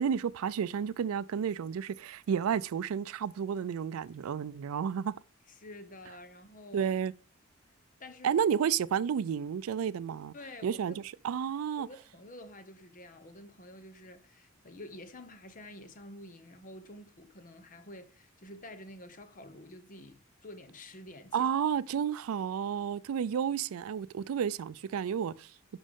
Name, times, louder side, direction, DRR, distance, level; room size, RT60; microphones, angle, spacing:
voice 1, 0.0-5.2 6.7-7.1 8.2-10.3 10.6-11.9 21.3-25.5, right 7 dB, 85° right, 0.4 m, -31 dB
voice 2, 5.6-6.9 8.0-8.4 10.3-11.0 11.8-21.5, left 1 dB, 40° left, 0.9 m, -49 dB
10.0 x 5.4 x 3.6 m
head